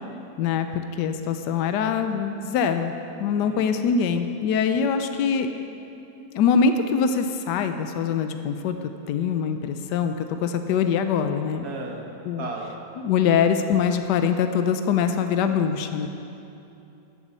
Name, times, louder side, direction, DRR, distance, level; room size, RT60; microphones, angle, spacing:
voice 1, 0.4-2.9 3.2-5.5 6.3-8.8 9.1-11.7 12.3-12.5 13.0-16.1, left 6 dB, 80° left, 7 dB, 1.3 m, -23 dB
voice 2, 3.4-3.7 11.6-12.0 12.4-12.8, right 3 dB, 60° right, 0 dB, 2.1 m, -35 dB
13.5 x 8.1 x 7.5 m, 2.8 s
omnidirectional pair, 1.9 m